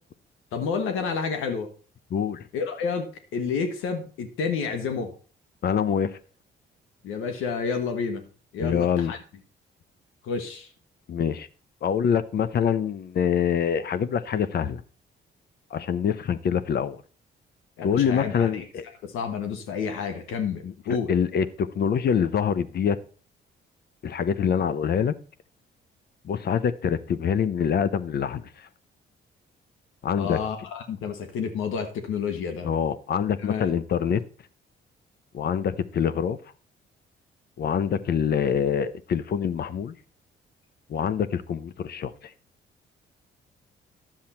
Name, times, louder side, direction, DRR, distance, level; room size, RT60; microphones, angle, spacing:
voice 1, 0.5-1.7 2.5-5.1 7.0-8.2 8.5-9.2 10.2-10.7 17.8-18.7 19.0-21.1 30.1-32.7 33.4-33.7, left 5 dB, 90° left, 1.3 m, -30 dB
voice 2, 2.1-2.4 5.6-6.2 8.6-9.2 11.1-11.5 11.8-14.8 15.7-17.0 17.8-18.8 20.6-20.7 21.1-23.0 24.0-25.1 26.2-28.4 30.0-30.4 32.6-34.2 35.3-36.4 37.6-39.9 40.9-42.1, left 7 dB, 55° left, 0.8 m, -25 dB
10.5 x 7.4 x 4.3 m
cardioid pair, 90°, 20 cm